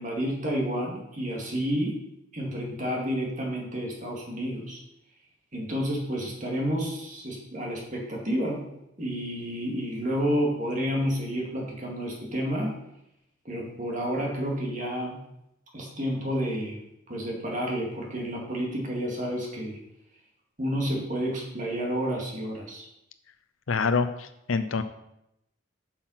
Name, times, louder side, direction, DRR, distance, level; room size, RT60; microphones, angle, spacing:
voice 1, 0.0-2.0 2.3-4.8 5.5-8.6 9.0-12.7 13.4-15.2 15.7-16.8 17.1-19.8 20.6-22.9, equal, 40° right, -1 dB, 2.2 m, -30 dB
voice 2, 23.7-24.8, left 4 dB, 80° left, 9 dB, 0.6 m, -26 dB
8.8 x 5.9 x 5.8 m, 0.83 s
head